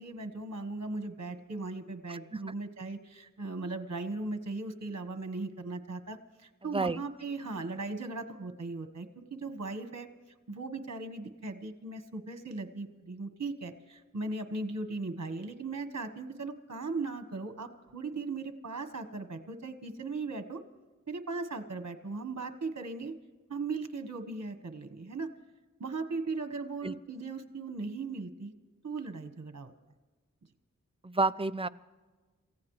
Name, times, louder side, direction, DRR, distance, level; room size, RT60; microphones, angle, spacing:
voice 1, 0.0-10.1 10.5-20.6 21.1-23.1 23.5-25.3 25.8-28.5 28.8-29.7, right 3 dB, 55° right, 9 dB, 1.4 m, -38 dB
voice 2, 2.1-2.4 6.7-7.0 26.8-26.9 31.0-31.7, right 3 dB, 15° right, 12 dB, 0.6 m, -30 dB
28.0 x 15.5 x 3.2 m, 1.3 s
wide cardioid pair, 50°, 31 cm